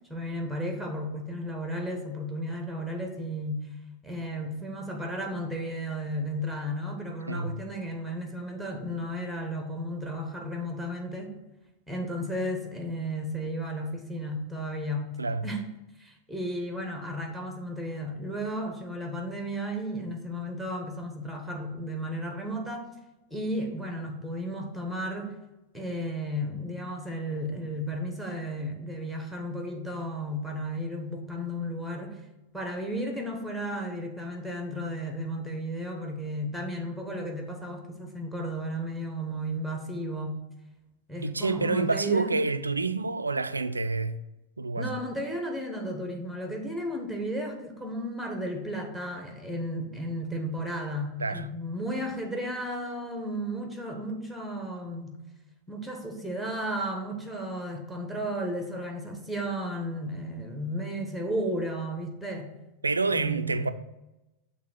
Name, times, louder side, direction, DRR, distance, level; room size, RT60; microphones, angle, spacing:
voice 1, 0.1-3.7 4.0-11.4 11.9-15.1 15.4-15.7 16.0-22.9 23.3-25.4 25.7-32.2 32.5-40.4 41.1-42.3 44.7-55.2 55.7-62.5 63.1-63.7, equal, ahead, 1.1 m, -34 dB
voice 2, 41.2-44.2 44.6-44.9 51.2-51.5 62.8-63.7, right 3 dB, 80° right, 0.3 m, -28 dB
6.5 x 3.4 x 5.8 m
figure-of-eight pair, 90°, 0 cm